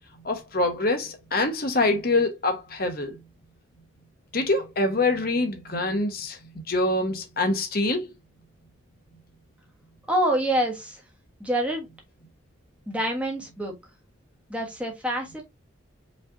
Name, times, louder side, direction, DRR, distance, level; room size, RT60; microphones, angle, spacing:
voice 1, 0.2-3.2 4.3-8.1, left 2 dB, 45° left, 1.0 m, -25 dB
voice 2, 10.1-11.0 11.4-11.9 12.9-13.7 14.5-15.4, right 1 dB, 5° right, 1.3 m, -26 dB
5.2 x 3.3 x 2.6 m
head